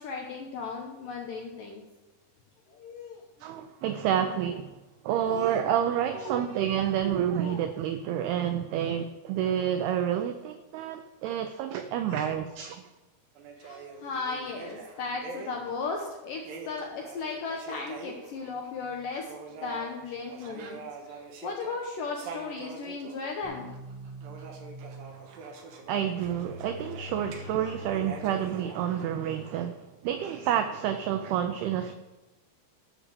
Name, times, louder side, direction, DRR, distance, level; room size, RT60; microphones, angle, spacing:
voice 1, 0.0-1.8 2.7-3.2 5.2-5.6 6.2-6.3 7.4-7.6 11.7-11.8 12.1-12.4 13.6-23.7 27.4-28.0 29.4-29.5, left 4 dB, 75° left, 0 dB, 2.0 m, -36 dB
voice 2, 3.4-4.8 5.0-12.8 25.9-31.9, right 9 dB, 90° right, 8 dB, 2.2 m, -29 dB
sound 1, 13.4-18.7 19.1-27.4 27.8-29.5, right 4 dB, 65° right, 2.5 m, -44 dB
sound 2, 23.4-29.0, left 1 dB, 50° right, 2.5 m, -45 dB
13.5 x 5.0 x 6.8 m, 1.1 s
omnidirectional pair, 5.2 m